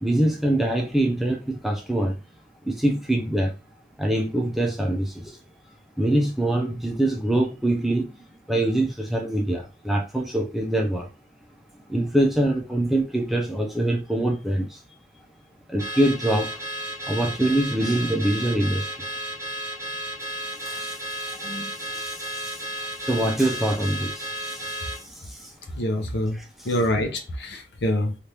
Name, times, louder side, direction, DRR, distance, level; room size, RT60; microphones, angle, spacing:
voice 1, 0.0-2.2 2.6-3.5 4.0-5.4 6.0-8.2 8.5-11.1 11.9-14.8 15.7-16.6 17.1-19.1 20.5-25.5 26.4-26.5, right 1 dB, ahead, 0.5 m, -24 dB
Car / Alarm, 15.8-25.0, right 1 dB, 15° right, 0.8 m, -33 dB
voice 2, 25.7-26.4 26.6-28.2, left 1 dB, 70° left, 0.7 m, -25 dB
2.9 x 2.4 x 3.3 m
head